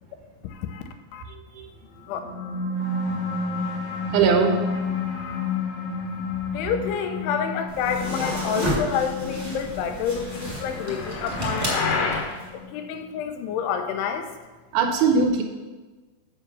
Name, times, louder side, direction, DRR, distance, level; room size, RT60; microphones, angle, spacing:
voice 1, 0.4-0.8 1.1-1.2 2.1-2.2 5.0-5.5 6.5-12.1 12.5-14.3, left 7 dB, 85° left, 6 dB, 2.8 m, -29 dB
voice 2, 1.3-1.7 4.1-4.6 14.7-15.4, right 5 dB, 80° right, 4 dB, 2.5 m, -21 dB
sound 1, 2.0-13.0, left 3 dB, 50° left, 1.5 m, -31 dB
sound 2, 7.7-12.5, equal, 20° right, 1.2 m, -31 dB
sound 3, 10.0-12.3, left 4 dB, 65° left, 1.8 m, -29 dB
7.3 x 5.3 x 6.9 m, 1.3 s
omnidirectional pair, 4.6 m